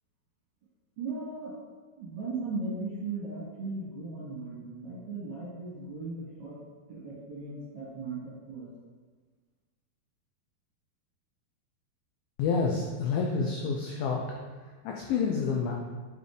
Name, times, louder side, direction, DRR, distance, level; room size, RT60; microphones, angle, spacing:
voice 1, 1.0-1.5 2.0-6.6 6.9-8.7, right 3 dB, 55° right, -8 dB, 2.7 m, -37 dB
voice 2, 12.4-15.7, left 5 dB, 90° left, 0 dB, 2.1 m, -29 dB
7.4 x 4.0 x 3.3 m, 1.4 s
omnidirectional pair, 4.8 m